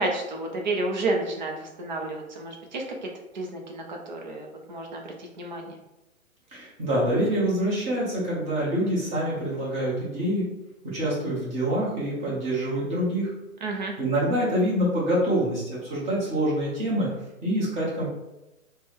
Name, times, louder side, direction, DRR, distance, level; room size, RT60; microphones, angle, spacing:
voice 1, 0.0-3.1 3.3-5.7 13.6-13.9, right 2 dB, 35° right, 1 dB, 0.5 m, -31 dB
voice 2, 6.5-10.4 10.8-13.3 14.0-17.1 17.4-18.1, right 1 dB, 15° right, -7 dB, 1.0 m, -26 dB
3.3 x 2.2 x 3.3 m, 0.95 s
hypercardioid pair, 135°, 42 cm